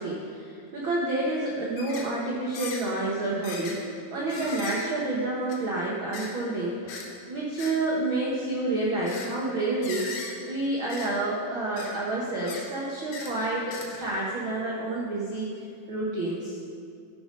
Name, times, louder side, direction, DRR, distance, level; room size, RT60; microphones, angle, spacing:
voice 1, 0.0-3.8 4.1-6.9 7.3-15.5 15.9-16.6, right 2 dB, 75° right, -5 dB, 1.1 m, -29 dB
sound 1, 1.8-2.1 2.5-2.8 3.4-3.8 4.3-4.8 5.5-5.6 6.1-6.3 6.9-7.1 7.6-7.7 9.1-9.3 9.8-10.3 10.9-11.1 11.7-11.9 12.4-12.6 13.1-13.3 13.7-14.1 14.7-14.8, left 4 dB, 75° left, 3.1 m, -38 dB
14.0 x 7.0 x 5.3 m, 2.4 s
omnidirectional pair, 4.4 m